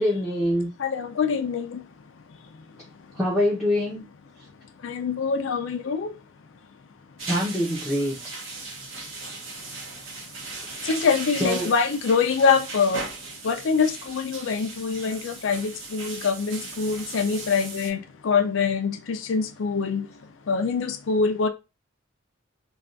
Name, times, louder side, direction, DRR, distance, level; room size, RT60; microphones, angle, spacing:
voice 1, 0.0-0.7 3.2-4.0 7.3-8.2 10.7-10.8 11.4-11.7, left 1 dB, ahead, 0.7 m, -24 dB
voice 2, 0.8-1.8 2.4-2.6 4.8-6.2 10.8-13.1 13.4-21.5, left 5 dB, 65° left, 0.4 m, -25 dB
sound 1, 7.2-17.9, right 3 dB, 70° right, 1.0 m, -37 dB
3.3 x 2.3 x 2.5 m
head